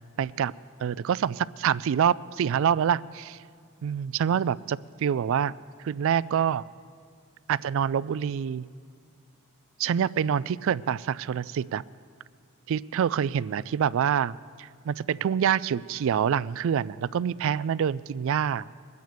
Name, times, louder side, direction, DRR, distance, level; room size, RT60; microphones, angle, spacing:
voice 1, 0.2-0.5 0.8-3.4 3.8-5.5 5.8-6.6 7.5-8.6 9.8-11.8 12.7-18.7, right 8 dB, 65° right, 20 dB, 0.3 m, -26 dB
22.0 x 9.4 x 6.8 m, 2.2 s
head